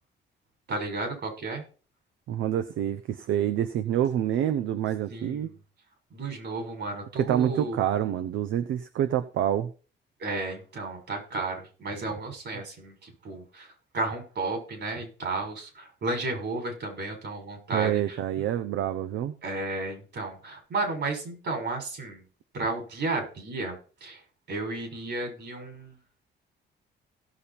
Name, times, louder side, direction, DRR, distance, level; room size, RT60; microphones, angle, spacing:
voice 1, 0.7-1.6 5.1-5.6 6.1-7.8 10.2-18.2 19.4-22.2 22.5-24.2 24.5-26.0, right 2 dB, 60° right, 4 dB, 6.0 m, -33 dB
voice 2, 2.3-5.5 7.2-9.7 17.7-19.3, right 10 dB, 80° right, 9 dB, 0.8 m, -27 dB
17.0 x 7.1 x 4.3 m, 0.37 s
cardioid pair, 90°, 20 cm